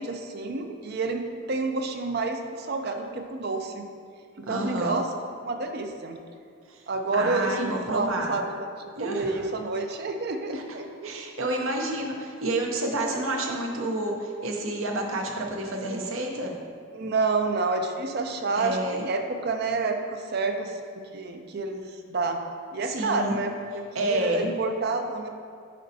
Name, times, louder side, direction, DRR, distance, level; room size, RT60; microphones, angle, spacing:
voice 1, 0.0-3.8 4.4-5.1 5.4-6.2 6.9-11.2 16.9-20.8 21.1-22.4 22.7-25.3, right 3 dB, 50° right, 5 dB, 0.5 m, -29 dB
voice 2, 4.5-5.0 7.1-8.4 9.0-9.5 10.5-10.6 11.0-16.6 18.5-19.0 22.8-23.4 23.9-24.4, right 1 dB, 70° right, 1 dB, 0.8 m, -29 dB
8.4 x 5.1 x 2.7 m, 2.3 s
head